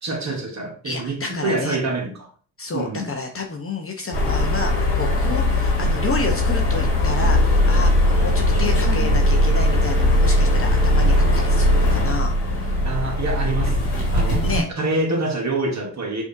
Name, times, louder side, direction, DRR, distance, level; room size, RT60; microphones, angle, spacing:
voice 1, 0.0-2.3 2.7-3.1 5.2-5.6 12.8-13.8 14.1-14.4 14.8-16.2, right 2 dB, 35° right, 2 dB, 1.2 m, -26 dB
voice 2, 0.8-1.8 2.6-12.8 14.4-14.7, left 3 dB, 25° left, 3 dB, 0.8 m, -30 dB
sound 1, 4.1-14.6, left 1 dB, 85° left, 1.6 m, -19 dB
4.9 x 2.6 x 2.6 m, 0.42 s
hypercardioid pair, 55°, 49 cm